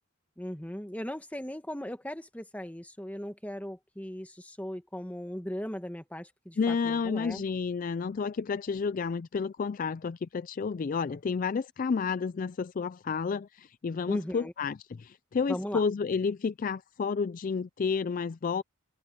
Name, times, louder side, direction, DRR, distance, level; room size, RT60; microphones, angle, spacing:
voice 1, 0.4-7.4 14.1-14.5 15.5-15.8, equal, 5° left, 1.3 m, -38 dB
voice 2, 6.6-18.6, left 5 dB, 40° left, 0.3 m, -31 dB
open air
head